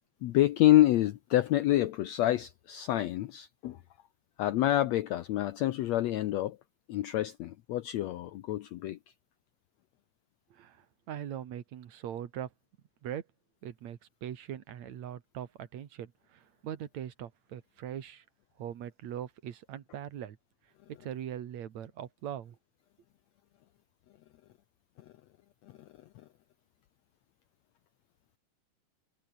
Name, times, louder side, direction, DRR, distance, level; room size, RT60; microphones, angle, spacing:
voice 1, 0.2-3.8 4.4-6.6 6.9-9.0, left 14 dB, 70° left, 1.8 m, -27 dB
voice 2, 10.5-12.5 13.0-13.2 13.6-18.2 18.6-20.4 21.0-22.6, right 10 dB, 60° right, 2.8 m, -41 dB
omnidirectional pair, 3.7 m